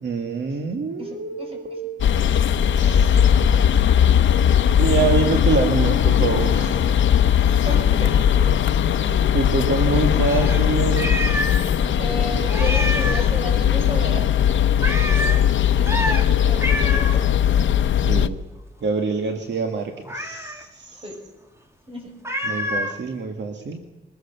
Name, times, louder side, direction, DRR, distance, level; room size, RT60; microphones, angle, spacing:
voice 1, 0.0-2.0 2.8-3.3 4.7-6.8 9.0-11.1 18.0-18.4 18.8-21.0 22.5-23.8, right 4 dB, 70° right, 5 dB, 1.8 m, -25 dB
voice 2, 1.0-1.8 2.9-3.0 7.4-8.6 12.0-14.3 15.7-17.0 20.9-21.2 21.9-22.1, equal, 30° right, 2 dB, 6.3 m, -33 dB
sound 1, 2.0-18.3, left 9 dB, 85° left, 0.7 m, -19 dB
Meow, 10.2-11.7 12.0-12.1 12.5-13.3 14.8-15.4 15.8-16.3 16.6-17.2 20.1-20.6 22.2-23.0, equal, 15° right, 2.1 m, -27 dB
22.0 x 21.0 x 6.8 m, 1.1 s
wide cardioid pair, 135°, 19 cm